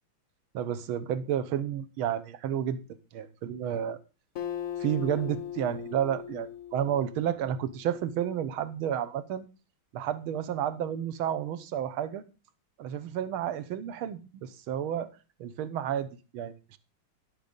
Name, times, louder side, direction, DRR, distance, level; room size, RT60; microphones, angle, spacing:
voice 1, 0.5-2.8 3.1-4.0 4.8-9.5 9.9-12.2 12.8-15.1 15.4-16.1 16.3-16.8, right 10 dB, 90° right, 1.7 m, -31 dB
Acoustic guitar, 4.4-7.9, left 10 dB, 55° left, 1.0 m, -39 dB
10.5 x 6.8 x 5.1 m
omnidirectional pair, 2.2 m